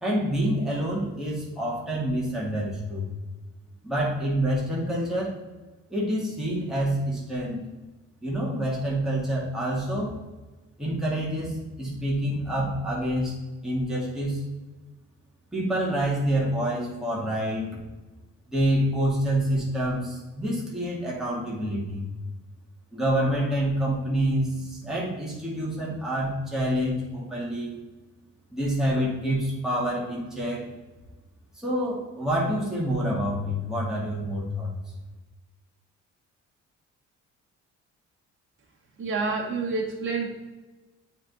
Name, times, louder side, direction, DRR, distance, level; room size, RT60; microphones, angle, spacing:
voice 1, 0.0-3.0 3.8-5.3 5.9-7.6 8.2-10.2 10.8-13.4 13.6-14.4 15.5-17.7 18.5-22.1 22.9-27.8 28.5-30.7 31.6-34.7, right 1 dB, ahead, -6 dB, 2.1 m, -27 dB
voice 2, 39.0-40.3, right 4 dB, 40° right, -1 dB, 1.4 m, -28 dB
7.7 x 3.9 x 4.1 m, 1.2 s
cardioid pair, 90°, 30 cm